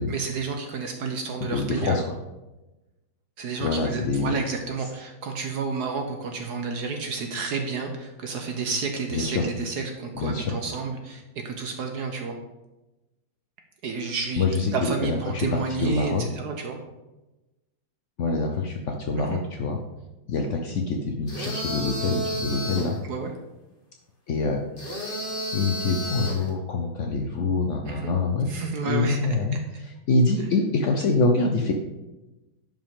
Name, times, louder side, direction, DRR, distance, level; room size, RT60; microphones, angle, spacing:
voice 1, 0.0-2.0 3.4-12.3 13.8-14.4 14.7-16.8 19.2-19.4 23.0-23.3 27.8-28.1 28.5-29.2, right 4 dB, 65° right, 4 dB, 1.2 m, -30 dB
voice 2, 1.4-2.0 3.6-4.3 9.1-9.5 10.2-10.5 14.4-16.2 18.2-19.8 20.3-23.0 24.3-24.6 24.9-25.2 25.5-28.5 28.9-31.7, left 3 dB, 75° left, 2 dB, 0.6 m, -25 dB
sound 1, 21.3-23.0 24.8-26.5, right 1 dB, 30° left, 1.6 m, -31 dB
10.5 x 5.1 x 3.6 m, 1.0 s
omnidirectional pair, 2.2 m